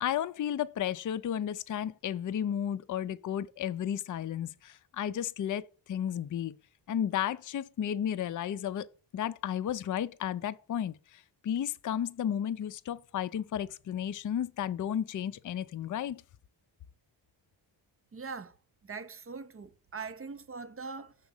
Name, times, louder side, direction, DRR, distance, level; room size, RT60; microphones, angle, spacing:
voice 1, 0.0-6.5 6.9-8.9 9.1-16.2, left 9 dB, 45° left, 0.4 m, -33 dB
voice 2, 18.1-18.6 18.8-21.2, right 4 dB, 30° right, 0.5 m, -42 dB
6.1 x 3.7 x 5.4 m
wide cardioid pair, 80°, 45 cm